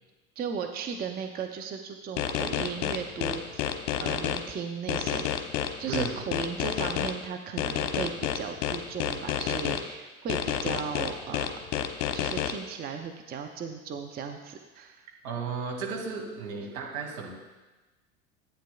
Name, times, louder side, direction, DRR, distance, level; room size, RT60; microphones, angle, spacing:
voice 1, 0.4-3.4 4.0-5.5 5.8-11.5 12.1-15.0, right 6 dB, 20° right, 5 dB, 0.6 m, -36 dB
sound 1, 2.2-4.4 4.9-7.1 7.6-9.8 10.3-12.5, left 10 dB, 50° left, 0.9 m, -29 dB
voice 2, 5.8-6.2 15.2-17.3, right 5 dB, 70° right, 0 dB, 2.3 m, -34 dB
14.0 x 8.7 x 2.3 m, 1.2 s
figure-of-eight pair, 80°, 43 cm